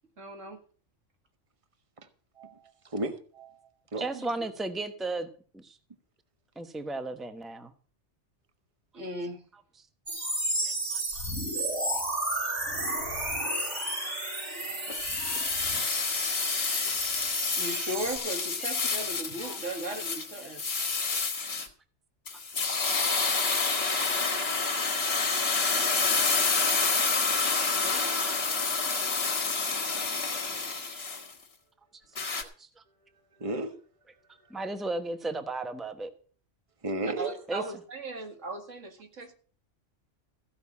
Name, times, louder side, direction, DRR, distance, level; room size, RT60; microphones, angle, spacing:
voice 1, 0.2-0.6 4.1-4.5 8.9-9.4 17.6-20.6 27.7-28.1 37.0-39.3, right 1 dB, 90° right, 5 dB, 2.3 m, -37 dB
voice 2, 2.4-3.6 3.9-4.1 13.7-13.9 33.4-33.8 36.8-37.3, right 2 dB, 30° right, 9 dB, 1.3 m, -34 dB
voice 3, 4.0-5.3 5.5-5.8 6.6-7.7 10.6-11.3 12.9-13.0 14.0-14.1 14.9-15.0 15.7-15.8 16.4-17.0 18.6-18.7 19.4-19.6 20.8-20.9 29.9-30.0 30.9-31.0 32.3-32.7 34.5-36.1 37.5-37.6, right 2 dB, ahead, 9 dB, 0.9 m, -36 dB
sound 1, 10.1-18.2, right 1 dB, 70° right, 4.8 m, -32 dB
sound 2, 14.9-21.7 22.3-31.3 32.2-32.4, left 4 dB, 55° left, 1.8 m, -28 dB
15.0 x 5.8 x 8.5 m, 0.43 s
omnidirectional pair, 1.3 m